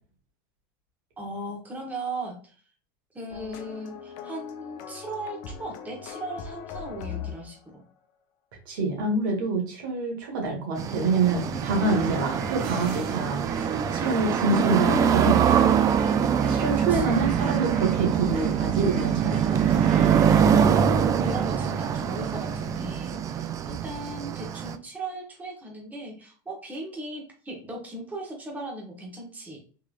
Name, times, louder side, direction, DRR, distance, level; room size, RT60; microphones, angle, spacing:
voice 1, 1.2-2.6 3.1-7.8 11.4-12.0 16.9-17.4 21.2-29.6, right 2 dB, 15° right, -1 dB, 1.2 m, -38 dB
sound 1, 3.3-7.7, left 7 dB, 60° left, 0.6 m, -39 dB
voice 2, 8.7-13.4 13.9-15.8 16.5-19.8, right 3 dB, 80° right, 1 dB, 1.5 m, -26 dB
sound 2, 10.8-24.8, right 8 dB, 30° right, 0.3 m, -24 dB
sound 3, 11.2-23.0, right 4 dB, 55° right, 0.8 m, -40 dB
3.7 x 3.1 x 2.4 m, 0.41 s
supercardioid pair, 120°, 11 cm